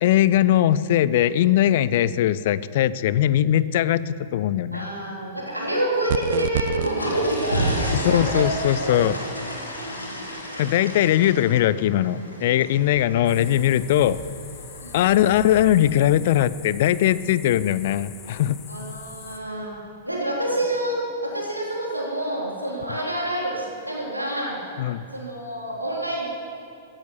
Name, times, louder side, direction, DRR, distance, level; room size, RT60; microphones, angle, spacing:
voice 1, 0.0-4.9 7.9-9.2 10.6-14.2 14.9-18.6 24.8-25.0, left 12 dB, 50° left, 18 dB, 0.4 m, -20 dB
voice 2, 4.7-8.4 8.7-9.0 9.8-10.3 13.4-13.5 14.8-15.1 18.7-19.8 20.0-24.6 25.1-26.3, right 1 dB, 90° right, -3 dB, 3.5 m, -28 dB
sound 1, 6.1-6.9, right 11 dB, 55° right, 0.3 m, -26 dB
sound 2, 6.5-15.6, equal, 80° left, 2.5 m, -31 dB
sound 3, 13.3-19.4, left 7 dB, 30° left, 1.7 m, -44 dB
15.5 x 11.0 x 7.2 m, 2.9 s
figure-of-eight pair, 100°, 0 cm